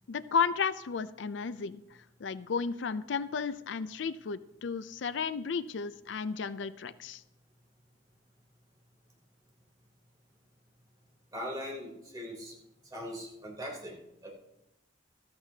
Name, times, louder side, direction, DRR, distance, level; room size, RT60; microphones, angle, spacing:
voice 1, 0.1-1.8 2.2-7.2, left 5 dB, 75° left, 15 dB, 0.4 m, -33 dB
voice 2, 11.3-12.5 12.9-13.9 14.2-14.3, equal, 20° right, -2 dB, 3.4 m, -40 dB
15.0 x 13.5 x 2.8 m, 0.86 s
head